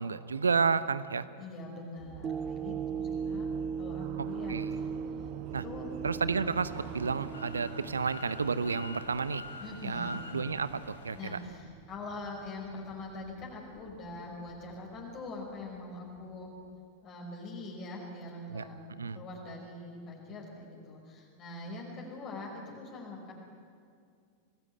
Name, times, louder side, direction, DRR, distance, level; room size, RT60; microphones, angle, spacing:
voice 1, 0.0-1.3 4.5-4.8 5.5-5.6 6.0-9.4 9.8-11.4 18.5-18.7 19.0-19.2, right 5 dB, 75° right, 16 dB, 0.9 m, -31 dB
voice 2, 1.4-3.5 3.8-4.8 5.6-5.9 9.6-10.2 11.1-16.5 17.0-18.7 19.1-23.3, left 2 dB, 35° left, -1 dB, 5.4 m, -43 dB
sound 1, 2.0-16.9, right 10 dB, 45° right, 1.2 m, -49 dB
sound 2, 2.2-10.6 11.1-11.2, right 6 dB, 25° right, 1.0 m, -39 dB
sound 3, 6.2-11.5, left 3 dB, 70° left, 4.0 m, -47 dB
25.0 x 18.5 x 9.9 m, 2.3 s
figure-of-eight pair, 90°, 0 cm